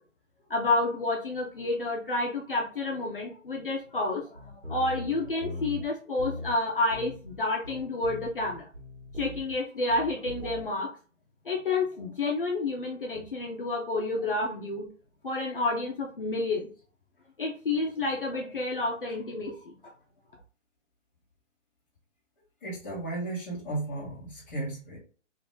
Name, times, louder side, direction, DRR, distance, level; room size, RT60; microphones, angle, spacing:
voice 1, 0.5-4.4 4.7-8.7 9.2-10.9 11.5-14.9 15.2-16.7 17.4-19.7, left 2 dB, 45° left, -1 dB, 0.7 m, -29 dB
sound 1, 4.4-5.9 6.2-6.6 6.9-7.4 7.6-9.6 9.9-10.6, left 2 dB, 80° right, 1.9 m, -40 dB
voice 2, 22.6-25.0, right 2 dB, 10° left, -10 dB, 1.1 m, -35 dB
3.8 x 2.5 x 3.7 m, 0.38 s
hypercardioid pair, 180°, 37 cm